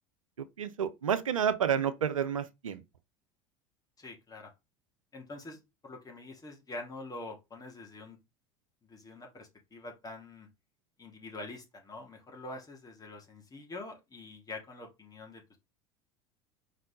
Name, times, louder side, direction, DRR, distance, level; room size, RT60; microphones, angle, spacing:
voice 1, 0.4-2.8, right 8 dB, 85° right, 0.7 m, -30 dB
voice 2, 4.0-4.5 5.1-8.2 8.8-10.5 11.0-15.6, left 2 dB, 20° left, 3.0 m, -45 dB
4.8 x 4.2 x 5.1 m
hypercardioid pair, 75°, 17 cm